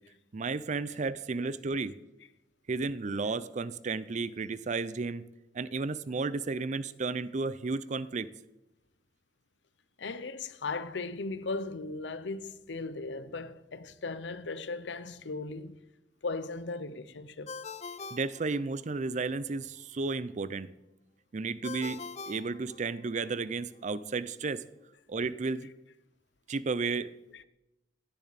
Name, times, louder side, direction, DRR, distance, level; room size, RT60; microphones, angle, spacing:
voice 1, 0.3-1.9 2.7-5.2 5.5-8.3 18.1-20.7 21.3-22.0 22.3-24.6 25.1-25.7 26.5-27.1, right 4 dB, 40° right, 0.5 m, -33 dB
voice 2, 10.0-15.8 16.2-17.5 27.3-27.4, left 3 dB, 80° left, 0.7 m, -37 dB
Ringtone, 17.5-19.1 21.6-23.3, left 5 dB, 40° left, 0.6 m, -43 dB
16.0 x 10.5 x 4.1 m
head